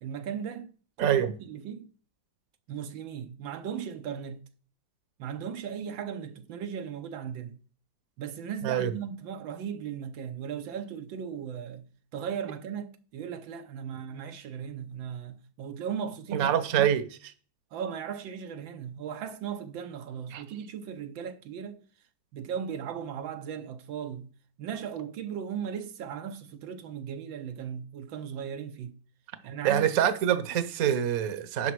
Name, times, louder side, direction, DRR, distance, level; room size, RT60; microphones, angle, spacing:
voice 1, 0.0-0.7 1.0-1.9 2.7-4.4 5.2-7.6 8.2-16.9 17.7-21.8 22.3-24.3 24.6-29.0 29.4-30.0, right 8 dB, 80° right, 1.6 m, -37 dB
voice 2, 16.3-17.0 20.3-20.4 29.6-31.7, right 10 dB, 55° right, 1.3 m, -25 dB
11.5 x 6.9 x 4.7 m
omnidirectional pair, 2.1 m